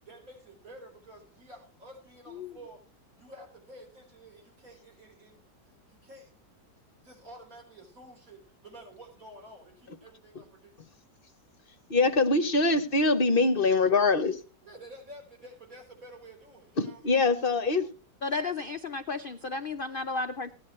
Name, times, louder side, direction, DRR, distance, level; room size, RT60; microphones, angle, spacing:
voice 1, 0.0-2.8 3.2-6.3 7.0-11.0 11.7-11.8 14.6-17.3, right 1 dB, 50° right, 1 dB, 5.0 m, -50 dB
voice 2, 11.9-14.4 16.8-17.9, left 3 dB, 45° left, 9 dB, 0.8 m, -23 dB
voice 3, 18.2-20.5, left 3 dB, 75° left, 9 dB, 0.4 m, -33 dB
16.5 x 10.5 x 3.2 m, 0.36 s
omnidirectional pair, 1.9 m